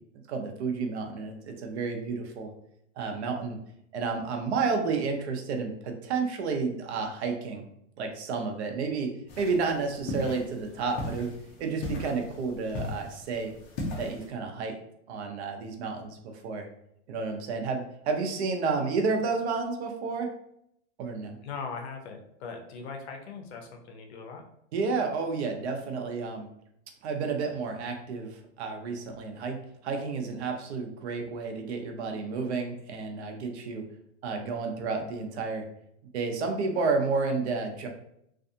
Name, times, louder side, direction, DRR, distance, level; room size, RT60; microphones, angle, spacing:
voice 1, 0.3-2.5 3.0-3.6 3.9-7.6 8.0-9.1 9.4-11.3 11.6-13.5 14.0-14.8 15.1-16.7 17.1-20.3 21.0-21.4 24.7-26.5 27.0-33.8 34.2-35.6 36.1-37.9, right 4 dB, 65° right, 3 dB, 0.7 m, -31 dB
sound 1, 9.3-14.3, left 2 dB, 25° left, 0.4 m, -38 dB
voice 2, 21.4-24.4, left 5 dB, 60° left, 3 dB, 0.6 m, -40 dB
2.5 x 2.3 x 2.6 m, 0.74 s
supercardioid pair, 150°, 36 cm